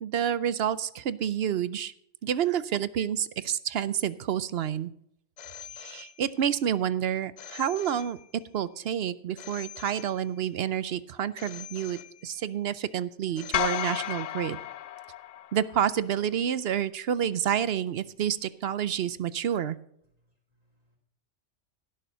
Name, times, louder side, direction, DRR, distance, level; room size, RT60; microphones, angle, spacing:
voice 1, 0.0-1.9 2.2-4.9 5.7-8.2 8.5-14.6 15.5-19.8, right 9 dB, 65° right, 16 dB, 0.8 m, -29 dB
Telephone, 5.4-6.6 7.4-8.6 9.4-10.6 11.4-12.6 13.4-14.6, left 9 dB, 55° left, 0.5 m, -46 dB
sound 1, 13.5-15.9, left 11 dB, 90° left, 1.0 m, -32 dB
voice 2, 20.1-21.0, equal, 35° right, -3 dB, 2.2 m, -71 dB
16.5 x 6.7 x 5.5 m, 0.70 s
omnidirectional pair, 1.2 m